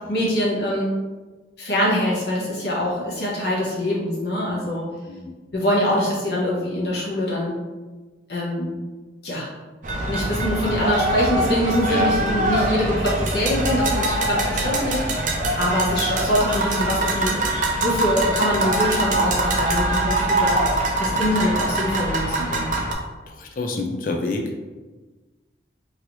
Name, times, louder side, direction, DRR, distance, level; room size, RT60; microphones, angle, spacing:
voice 1, 0.1-0.9 1.6-4.9 5.5-7.6 8.3-8.7 9.2-9.5 10.1-20.6 21.0-22.7, equal, 65° left, -5 dB, 0.9 m, -24 dB
sound 1, 9.8-22.9, right 2 dB, 45° right, 0.4 m, -23 dB
voice 2, 23.3-24.5, left 2 dB, 45° left, 3 dB, 0.3 m, -27 dB
3.1 x 2.7 x 2.9 m, 1.3 s
head